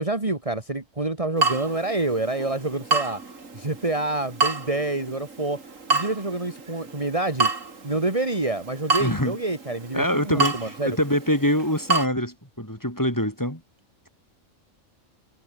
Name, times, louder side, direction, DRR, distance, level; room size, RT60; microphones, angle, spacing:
voice 1, 0.0-3.2 3.5-5.6 5.9-7.5 7.8-11.0, right 2 dB, 25° right, 2.4 m, -27 dB
Water tap faucet / Drip, 1.4-12.1, right 4 dB, 80° right, 3.2 m, -29 dB
voice 2, 9.0-9.4 9.9-13.6, equal, 15° left, 6.8 m, -24 dB
omnidirectional pair, 1.3 m